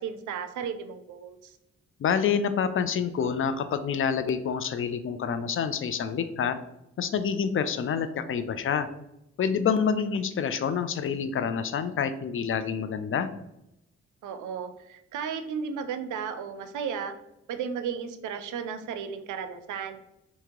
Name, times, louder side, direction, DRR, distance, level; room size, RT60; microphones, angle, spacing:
voice 1, 0.0-1.6 14.2-17.1 17.5-20.0, right 7 dB, 80° right, 9 dB, 0.5 m, -34 dB
voice 2, 2.0-6.6 7.0-8.9 9.4-13.3, left 7 dB, 45° left, 11 dB, 0.4 m, -27 dB
2.9 x 2.8 x 3.6 m, 0.84 s
supercardioid pair, 55°, 30 cm